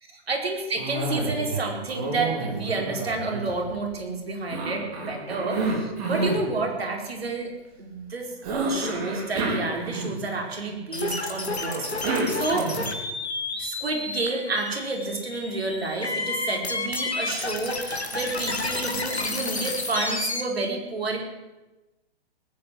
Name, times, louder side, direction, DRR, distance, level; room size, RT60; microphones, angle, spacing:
voice 1, 0.1-7.5 7.8-12.8 13.6-21.2, right 3 dB, 70° right, 2 dB, 4.5 m, -30 dB
Cough, 0.8-1.6 1.9-3.9 4.5-6.5 8.4-10.4 11.7-13.0, right 2 dB, 35° right, 4.3 m, -29 dB
sound 1, 10.9-20.4, left 3 dB, 85° left, 2.5 m, -31 dB
19.5 x 9.3 x 7.8 m, 1.1 s
figure-of-eight pair, 125°, 32 cm